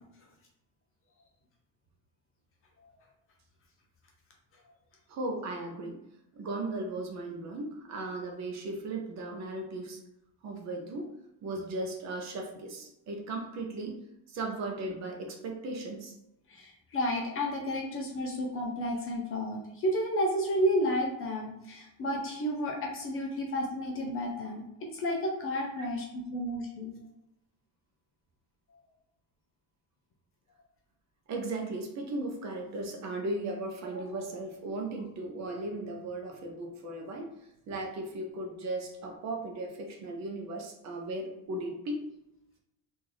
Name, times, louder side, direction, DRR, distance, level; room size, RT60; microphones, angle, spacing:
voice 1, 5.1-6.0 6.3-10.0 10.4-11.1 11.4-14.0 14.3-16.2 25.8-25.9 31.3-37.3 37.7-42.0, right 2 dB, 40° right, 2 dB, 0.5 m, -36 dB
voice 2, 16.5-24.6 24.9-27.0 28.7-28.8, equal, 35° left, 0 dB, 0.4 m, -31 dB
3.1 x 2.5 x 3.8 m, 0.86 s
cardioid pair, 180°, 43 cm